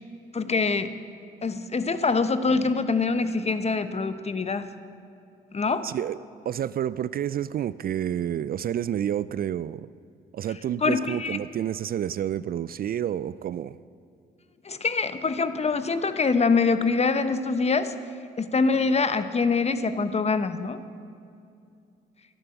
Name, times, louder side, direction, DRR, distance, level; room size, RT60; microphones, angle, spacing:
voice 1, 0.3-0.9 1.4-4.7 5.5-5.9 10.8-11.4 14.6-17.9 18.4-20.8, left 4 dB, 30° left, 11 dB, 0.9 m, -24 dB
voice 2, 5.8-6.2 6.5-9.9 10.3-13.8, right 10 dB, 50° right, 17 dB, 0.4 m, -29 dB
12.5 x 11.5 x 7.2 m, 2.5 s
supercardioid pair, 65°, 20 cm